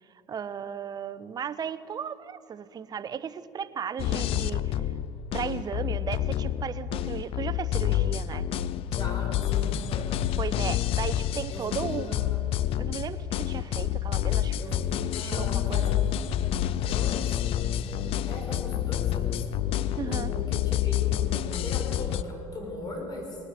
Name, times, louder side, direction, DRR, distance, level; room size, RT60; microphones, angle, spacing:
voice 1, 0.3-4.8 5.3-8.5 10.4-12.2 12.8-14.6 15.2-16.0 20.0-20.3, right 7 dB, 40° right, 14 dB, 0.7 m, -35 dB
sound 1, 4.0-22.2, left 11 dB, 60° left, 0.5 m, -28 dB
voice 2, 8.9-10.1 11.5-12.4 14.6-16.0 16.9-19.5 19.8-23.3, left 2 dB, 40° left, 0 dB, 5.1 m, -39 dB
19.0 x 9.8 x 7.5 m, 2.7 s
supercardioid pair, 90°, 11 cm